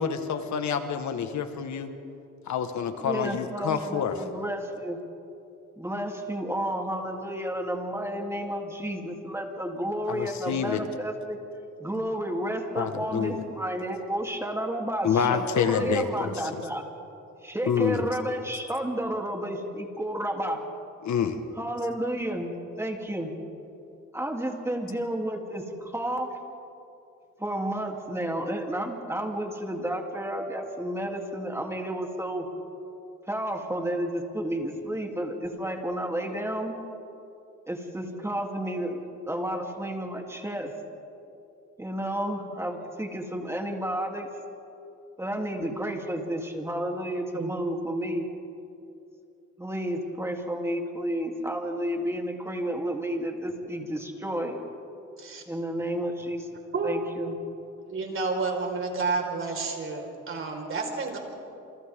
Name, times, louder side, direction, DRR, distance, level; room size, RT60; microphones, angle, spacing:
voice 1, 0.0-1.9 2.5-4.1 10.1-10.8 12.7-13.4 15.0-16.3 17.7-18.1 21.0-21.4, left 7 dB, 70° left, 8 dB, 1.7 m, -27 dB
voice 2, 3.0-5.0 5.8-11.4 11.8-16.8 17.4-20.6 21.6-23.3 24.1-26.3 27.4-32.5 33.3-36.7 37.7-39.0 39.3-40.7 41.8-44.3 45.2-48.3 49.6-54.6 55.5-56.5 56.8-57.4, right 1 dB, 10° right, 1 dB, 3.3 m, -31 dB
voice 3, 57.9-61.2, right 4 dB, 45° right, 1 dB, 5.0 m, -30 dB
29.5 x 28.0 x 3.8 m, 2.7 s
cardioid pair, 90°, 30 cm